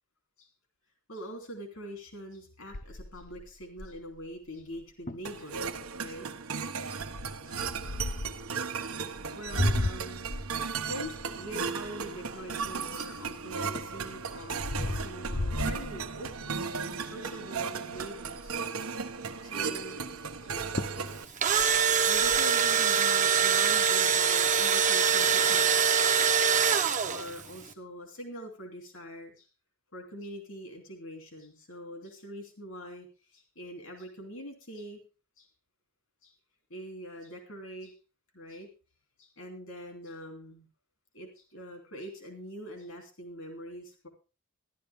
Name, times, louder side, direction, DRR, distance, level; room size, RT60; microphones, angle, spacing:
voice 1, 1.1-6.3 7.5-7.6 9.3-10.3 10.5-18.9 19.4-20.0 20.4-20.5 21.3-21.4 22.1-25.8 27.0-29.5 29.9-33.1 33.3-35.0 35.4-35.5 36.2-36.3 36.7-37.9 38.3-38.7 39.2-40.7 41.1-44.1, equal, 75° left, 3 dB, 2.9 m, -43 dB
sound 1, 2.7-4.2 4.7-4.8 5.1-5.3 5.9-6.2 7.0-8.5 9.1-13.0 13.5-16.6 17.0-17.3 17.6-17.7 17.9-18.7 20.4-20.5 20.8-21.1 21.4-22.4, left 2 dB, 40° left, 0.7 m, -34 dB
sound 2, 5.2-21.2, right 5 dB, 85° right, 1.0 m, -36 dB
Engine / Drill, 21.2-27.4, right 7 dB, 35° right, 0.7 m, -24 dB
14.0 x 11.5 x 3.5 m, 0.33 s
head